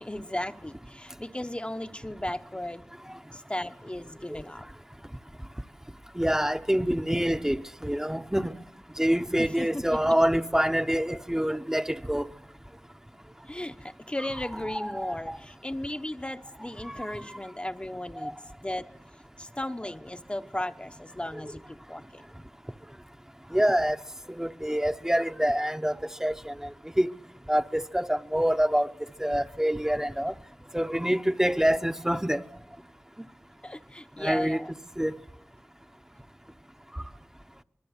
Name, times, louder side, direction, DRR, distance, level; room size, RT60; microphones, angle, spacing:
voice 1, 0.0-2.8 3.3-4.6 9.6-9.8 13.5-18.4 18.6-18.9 19.4-22.2 33.6-34.7, left 1 dB, 20° left, 0.9 m, -35 dB
voice 2, 6.2-8.5 9.0-12.2 14.2-14.3 14.5-15.4 16.9-17.0 18.2-18.3 23.5-24.0 24.3-25.9 26.2-26.7 27.0-27.1 27.5-28.9 29.2-30.3 30.7-32.4 34.2-34.6 35.0-35.1, equal, 10° right, 0.9 m, -26 dB
25.5 x 21.5 x 8.2 m
wide cardioid pair, 50°, 5 cm